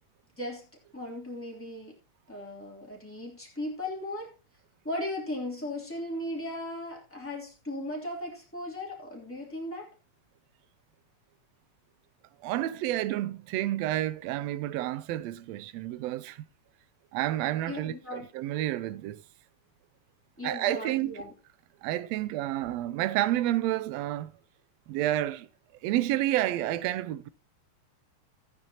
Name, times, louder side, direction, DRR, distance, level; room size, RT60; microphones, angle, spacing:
voice 1, 0.4-0.7 0.9-1.9 2.3-4.3 4.8-9.9 17.7-18.3 20.4-21.3, left 1 dB, 5° left, 2.8 m, -37 dB
voice 2, 12.4-16.4 17.1-19.2 20.4-21.2 21.8-24.3 24.9-25.5 25.8-27.3, right 14 dB, 80° right, 1.6 m, -30 dB
15.0 x 9.7 x 2.9 m
omnidirectional pair, 3.5 m